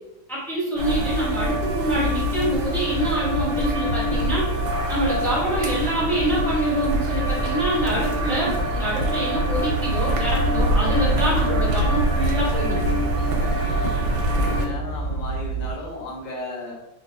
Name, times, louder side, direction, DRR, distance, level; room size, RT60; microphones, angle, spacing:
voice 1, 0.3-12.8, right 1 dB, ahead, -8 dB, 0.3 m, -26 dB
sound 1, 0.8-14.7, equal, 75° right, 1.1 m, -24 dB
sound 2, 9.5-15.7, right 3 dB, 50° left, 1.5 m, -30 dB
voice 2, 13.4-16.7, left 1 dB, 75° left, -3 dB, 1.6 m, -35 dB
3.9 x 2.1 x 2.6 m, 0.95 s
omnidirectional pair, 2.2 m